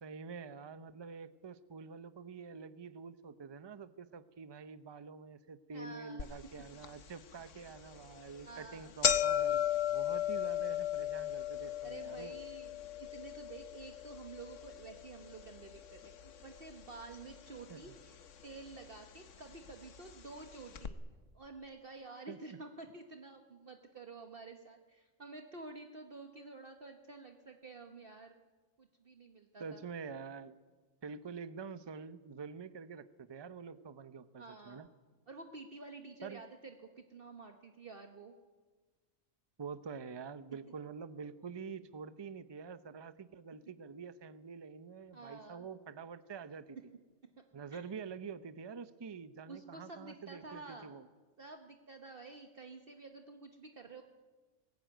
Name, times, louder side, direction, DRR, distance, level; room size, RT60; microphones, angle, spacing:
voice 1, 0.0-9.6 9.9-12.4 17.7-17.9 22.3-22.6 29.6-30.6 31.0-34.9 36.2-36.4 39.6-46.8 47.5-51.1, right 5 dB, 25° right, 13 dB, 0.6 m, -47 dB
voice 2, 5.7-6.2 8.4-8.9 11.8-21.0 21.3-28.4 28.8-29.8 34.4-34.9 35.3-38.3 45.1-45.7 47.7-47.8 49.5-51.0 51.4-54.0, right 3 dB, 45° right, 4 dB, 1.4 m, -50 dB
sound 1, 6.2-6.3 6.8-6.9 7.8-8.0 8.3-8.4 8.6-16.9 17.1-17.9 18.7-18.8 19.7-19.8 20.1-20.2 20.7-20.9, left 10 dB, 70° left, 1.3 m, -35 dB
20.5 x 17.5 x 9.1 m, 1.4 s
omnidirectional pair, 1.4 m